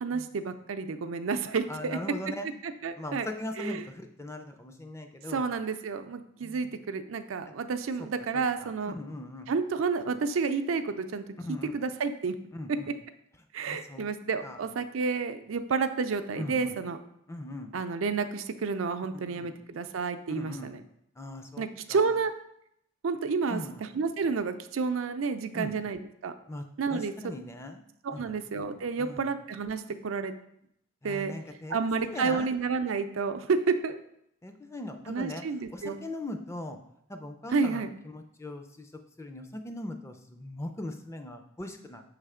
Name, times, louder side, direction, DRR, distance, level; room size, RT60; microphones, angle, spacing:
voice 1, 0.0-2.0 2.6-3.3 3.6-3.8 5.3-8.9 9.5-12.3 13.5-17.0 17.7-20.8 21.6-22.3 23.0-26.3 26.8-27.1 28.0-30.3 31.0-31.3 31.7-34.0 35.1-36.0 37.5-37.9, right 5 dB, 85° right, 9 dB, 0.4 m, -30 dB
voice 2, 1.7-2.5 3.0-5.4 6.4-6.7 7.5-7.6 8.3-9.5 11.4-11.7 12.5-12.9 13.7-14.1 14.4-14.6 16.4-16.7 17.3-17.7 19.1-19.5 20.3-20.8 21.2-22.1 23.5-23.8 25.5-25.8 26.5-27.8 28.1-28.3 29.0-29.3 31.0-32.5 34.4-35.4 35.7-36.8 37.1-38.9 39.2-42.0, left 1 dB, 15° left, 6 dB, 0.4 m, -40 dB
6.2 x 3.3 x 4.9 m, 0.75 s
head